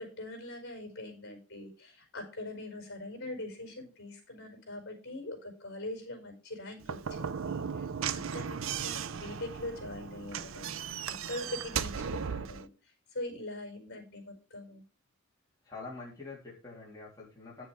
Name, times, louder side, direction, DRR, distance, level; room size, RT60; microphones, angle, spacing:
voice 1, 0.0-7.8 8.1-10.7 11.1-12.7 13.1-14.8, left 1 dB, 55° left, 3 dB, 5.0 m, -42 dB
Slam / Knock, 6.8-12.7, right 7 dB, 65° right, 0.6 m, -36 dB
voice 2, 15.6-17.7, left 3 dB, 15° left, -5 dB, 3.3 m, -45 dB
9.6 x 7.5 x 4.9 m, 0.33 s
head